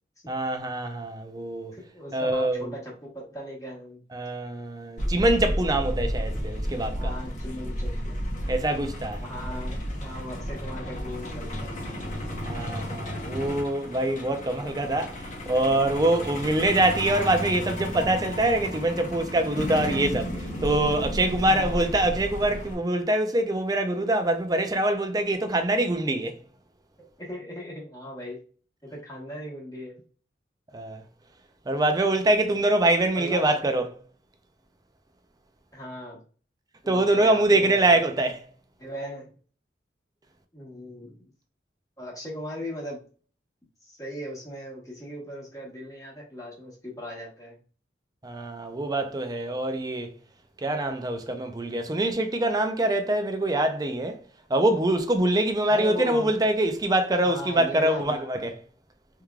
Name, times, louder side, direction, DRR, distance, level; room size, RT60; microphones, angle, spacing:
voice 1, 0.3-1.7 2.1-2.7 4.1-7.1 8.5-9.2 12.4-15.1 15.5-26.4 30.7-31.0 31.7-34.0 36.9-38.4 48.2-50.1 50.6-54.2 54.5-58.6, right 1 dB, 20° right, 0.5 m, -24 dB
voice 2, 1.7-4.0 7.0-8.2 9.2-12.0 21.5-21.9 27.2-28.4 28.8-30.0 33.1-33.8 35.7-36.2 36.8-38.0 38.8-39.3 40.5-41.2 42.0-43.0 43.8-47.6 55.7-56.3 57.2-58.3, equal, 20° left, 1.3 m, -38 dB
Truck, 5.0-22.7, equal, 45° left, 0.9 m, -33 dB
3.5 x 3.1 x 2.3 m
head